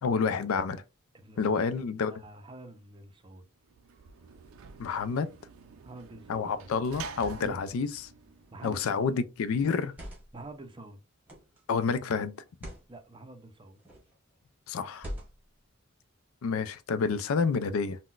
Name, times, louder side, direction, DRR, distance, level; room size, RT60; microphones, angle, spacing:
voice 1, 0.0-0.8 1.4-2.1 4.8-5.3 6.3-8.0 8.6-9.9 11.7-12.4 14.7-15.1 16.4-18.0, left 5 dB, 80° left, 0.4 m, -29 dB
voice 2, 1.1-1.6 2.1-3.5 5.8-6.7 7.4-7.6 8.5-9.2 10.3-11.0 12.9-13.8, right 2 dB, 25° right, 0.4 m, -47 dB
Sliding door / Slam, 3.7-9.1, right 5 dB, 80° right, 0.4 m, -47 dB
sound 1, 8.6-8.9 9.7-10.5 11.3-11.6 12.5-12.9 13.8-14.2 14.9-15.6, equal, 10° right, 1.0 m, -43 dB
3.8 x 2.1 x 2.3 m
head